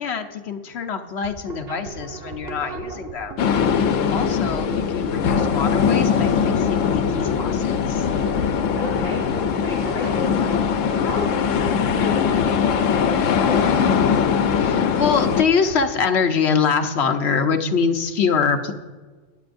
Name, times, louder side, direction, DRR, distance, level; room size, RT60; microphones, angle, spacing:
voice 1, 0.0-3.4 4.1-8.0 14.6-18.7, left 6 dB, 60° left, 5 dB, 1.1 m, -24 dB
sound 1, 1.1-15.9, right 3 dB, 55° right, 1.6 m, -38 dB
sound 2, 3.4-15.4, left 7 dB, 90° left, 1.1 m, -21 dB
voice 2, 4.0-4.3 8.8-10.5 10.9-13.6, left 3 dB, 45° left, 0 dB, 2.0 m, -33 dB
23.0 x 8.5 x 2.6 m, 1.4 s
omnidirectional pair, 1.3 m